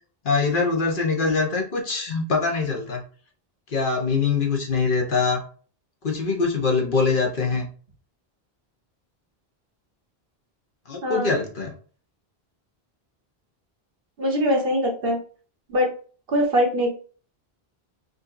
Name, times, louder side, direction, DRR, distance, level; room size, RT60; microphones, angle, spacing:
voice 1, 0.2-3.0 3.7-5.4 6.0-7.7 10.9-11.7, left 4 dB, 55° left, 2 dB, 1.1 m, -23 dB
voice 2, 11.0-11.3 14.2-15.2 15.7-15.9 16.3-16.9, equal, 65° right, 1 dB, 1.3 m, -22 dB
5.1 x 2.7 x 2.5 m, 0.40 s
omnidirectional pair, 1.1 m